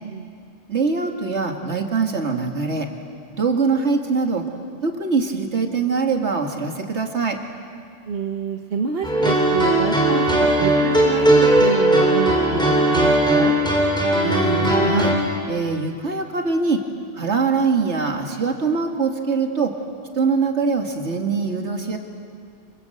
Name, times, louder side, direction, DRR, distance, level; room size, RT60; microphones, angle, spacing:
voice 1, 0.0-0.3 8.1-13.6, right 5 dB, 60° right, 3 dB, 1.4 m, -27 dB
voice 2, 0.7-2.9 3.3-4.4 4.8-7.4 14.2-15.1 15.5-16.8 17.1-19.7 20.1-22.0, right 4 dB, 75° right, 3 dB, 2.4 m, -23 dB
sound 1, 9.0-15.1, right 1 dB, 5° left, 4.3 m, -18 dB
26.0 x 26.0 x 7.9 m, 2.3 s
omnidirectional pair, 1.2 m